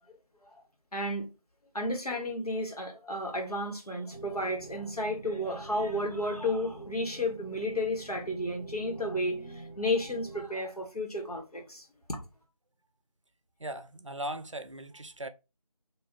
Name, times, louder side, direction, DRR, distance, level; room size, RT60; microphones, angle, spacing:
voice 1, 0.9-1.3 1.7-12.2, left 1 dB, 85° left, 1.5 m, -32 dB
sound 1, 4.1-10.5, right 2 dB, 45° left, 0.6 m, -46 dB
voice 2, 13.6-15.3, right 1 dB, 55° right, 0.5 m, -38 dB
3.7 x 2.7 x 2.9 m
figure-of-eight pair, 170°, 19 cm